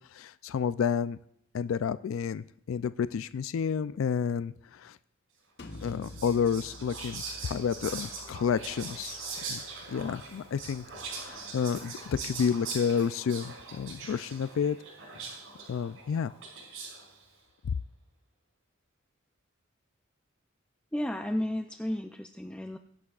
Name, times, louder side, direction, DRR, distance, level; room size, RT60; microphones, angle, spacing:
voice 1, 0.1-1.2 1.5-5.0 5.8-9.2 9.5-9.6 9.9-10.9 11.2-14.8 15.7-16.3, left 7 dB, 75° left, 15 dB, 0.4 m, -30 dB
sound 1, 5.6-11.2, left 2 dB, 60° left, 1.0 m, -50 dB
Whispering, 5.7-17.1, right 4 dB, 80° right, 5.6 m, -42 dB
voice 2, 20.9-22.8, left 1 dB, 5° left, 5 dB, 0.4 m, -33 dB
22.0 x 11.0 x 2.4 m, 0.68 s
head